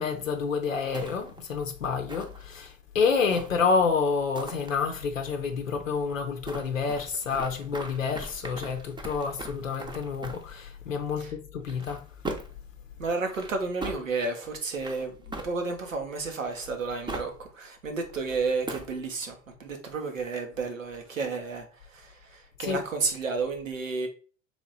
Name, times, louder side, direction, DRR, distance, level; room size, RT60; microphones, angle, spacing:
voice 1, 0.0-12.0 22.6-22.8, left 5 dB, 90° left, 0.6 m, -28 dB
sound 1, 0.9-1.5 2.1-2.7 3.3-3.8 4.3-4.7 6.4-10.6 11.6-12.6 13.2-14.0 14.8-15.9 16.5-17.4 18.0-19.0, right 2 dB, 10° right, 0.6 m, -40 dB
voice 2, 13.0-24.1, right 4 dB, 85° right, 0.9 m, -32 dB
3.4 x 3.0 x 3.9 m
figure-of-eight pair, 75°, 38 cm